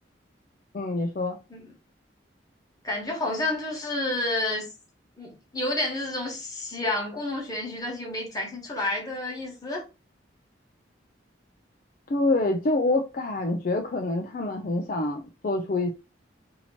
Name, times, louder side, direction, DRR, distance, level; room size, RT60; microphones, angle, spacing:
voice 1, 0.7-1.4 12.1-15.9, left 2 dB, 45° left, 0.4 m, -26 dB
voice 2, 2.8-4.7 5.2-9.8, left 2 dB, 20° left, 1.2 m, -30 dB
2.9 x 2.8 x 4.2 m
head